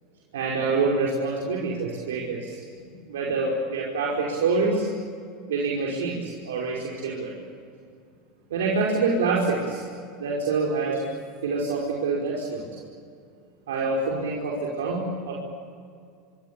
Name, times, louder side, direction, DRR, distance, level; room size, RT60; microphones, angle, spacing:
voice 1, 0.3-2.6 3.1-4.9 5.5-7.3 8.5-9.8 10.2-11.0 11.4-12.6 13.7-15.3, right 3 dB, 85° right, -3 dB, 5.2 m, -26 dB
26.0 x 25.5 x 8.5 m, 2.2 s
hypercardioid pair, 95°, 0 cm